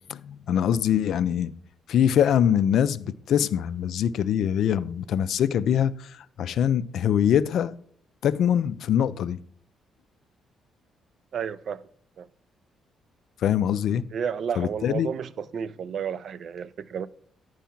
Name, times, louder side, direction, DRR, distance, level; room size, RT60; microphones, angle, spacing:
voice 1, 0.1-1.5 1.9-7.7 8.2-9.4 13.4-14.1 14.6-15.1, left 9 dB, 70° left, 0.3 m, -23 dB
voice 2, 11.3-11.8 12.2-12.3 14.1-17.1, right 7 dB, 60° right, 0.4 m, -31 dB
9.1 x 4.7 x 5.7 m
cardioid pair, 90°, 0 cm